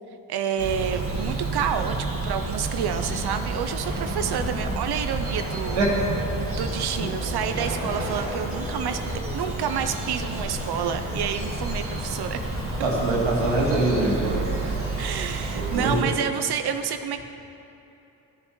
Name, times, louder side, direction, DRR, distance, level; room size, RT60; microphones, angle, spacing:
voice 1, 0.3-5.8 6.6-12.4 15.0-17.2, right 7 dB, 60° right, 8 dB, 0.6 m, -29 dB
Bird vocalization bird call bird song, 0.6-16.0, right 2 dB, 30° right, 1.9 m, -30 dB
voice 2, 5.7-6.2 12.8-14.8 15.5-16.1, right 2 dB, 85° right, -3 dB, 2.1 m, -24 dB
14.0 x 7.2 x 3.1 m, 2.9 s
cardioid pair, 75°, 44 cm